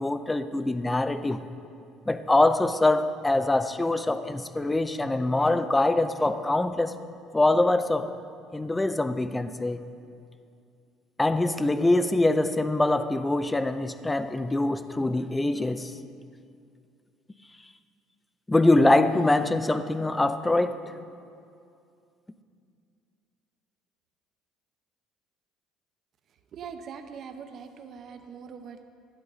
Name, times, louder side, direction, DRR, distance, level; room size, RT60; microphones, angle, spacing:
voice 1, 0.0-1.4 2.1-7.0 7.3-8.2 8.5-9.8 11.2-15.9 18.5-20.8, left 2 dB, 10° left, 12 dB, 0.5 m, -24 dB
voice 2, 26.5-28.8, right 6 dB, 50° right, 7 dB, 0.8 m, -42 dB
11.5 x 11.0 x 4.1 m, 2.4 s
cardioid pair, 115°, 0 cm